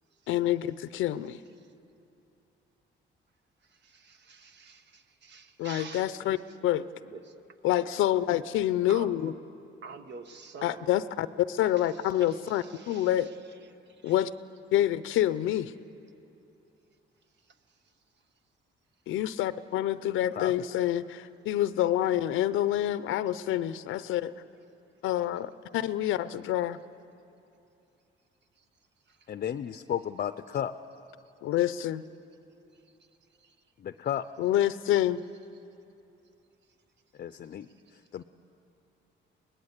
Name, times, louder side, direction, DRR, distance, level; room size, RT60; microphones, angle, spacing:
voice 1, 0.3-1.4 5.6-6.4 6.6-6.9 7.6-9.3 10.6-13.3 14.0-14.3 14.7-15.7 19.1-24.3 25.0-26.8 31.4-32.0 34.4-35.2, left 12 dB, 85° left, 15 dB, 0.6 m, -27 dB
voice 2, 3.6-6.2 7.0-7.5 8.9-9.3 9.8-10.9 11.8-13.4 13.6-14.2 17.4-17.6 28.6-28.7 29.1-29.3 32.7-32.8 37.7-37.8, right 5 dB, 60° right, 9 dB, 1.2 m, -48 dB
voice 3, 29.3-30.7 34.0-34.3 37.2-38.2, left 9 dB, 45° left, 11 dB, 0.6 m, -33 dB
23.5 x 19.0 x 8.2 m, 2.7 s
cardioid pair, 90°, 20 cm